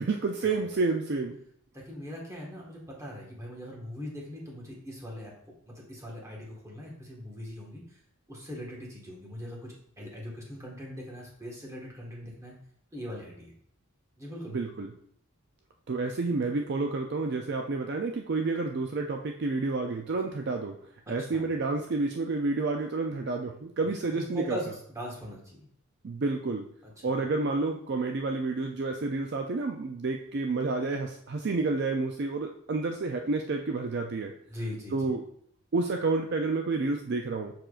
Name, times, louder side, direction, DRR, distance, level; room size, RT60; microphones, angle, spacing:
voice 1, 0.0-1.4 14.5-14.9 15.9-20.8 21.1-24.6 26.0-26.7 27.0-34.3 34.9-35.2 35.7-37.5, right 3 dB, 50° right, 3 dB, 0.4 m, -29 dB
voice 2, 1.7-5.3 5.6-8.0 8.3-12.5 12.9-13.5 14.2-14.6 21.1-21.5 24.1-25.7 26.8-27.2 34.5-35.1, equal, 15° right, -2 dB, 1.5 m, -41 dB
6.8 x 5.8 x 2.5 m, 0.65 s
head